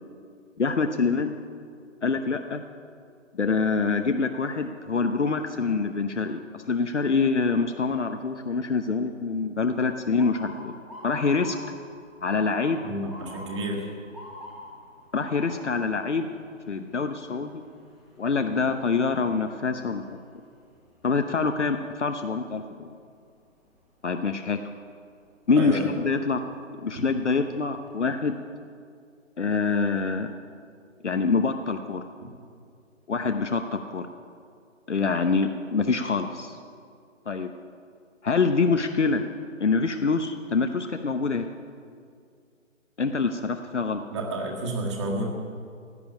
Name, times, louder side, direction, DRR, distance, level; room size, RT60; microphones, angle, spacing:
voice 1, 0.6-1.3 2.0-2.6 3.3-10.7 11.0-11.6 12.2-12.8 15.1-16.3 16.7-17.6 18.2-20.0 21.0-22.9 24.0-24.6 25.5-26.4 26.8-28.4 29.4-30.3 31.0-32.0 33.1-34.1 34.9-36.6 37.3-37.5 38.2-39.2 39.6-41.5 43.0-44.0, left 4 dB, 60° left, 7 dB, 0.9 m, -25 dB
Motor vehicle (road) / Siren, 10.2-22.1 22.5-23.0 23.8-24.1 25.9-26.2 26.7-26.8 27.2-27.9, left 1 dB, ahead, 1.3 m, -47 dB
voice 2, 12.8-13.9 25.6-25.9 44.1-45.3, right 1 dB, 20° right, 0 dB, 1.9 m, -30 dB
16.0 x 7.1 x 9.7 m, 2.3 s
figure-of-eight pair, 150°, 39 cm